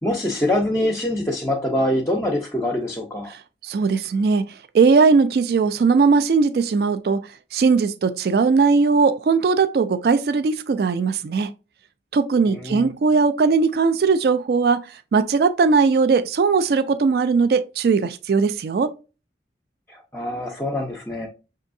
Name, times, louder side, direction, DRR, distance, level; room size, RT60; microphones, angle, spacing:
voice 1, 0.0-3.3 12.5-12.9 19.9-21.3, left 1 dB, 15° left, 0.5 m, -24 dB
voice 2, 3.3-4.4 4.7-7.2 7.5-11.5 12.1-18.9, right 4 dB, 60° right, 0.3 m, -19 dB
6.2 x 2.7 x 2.6 m
head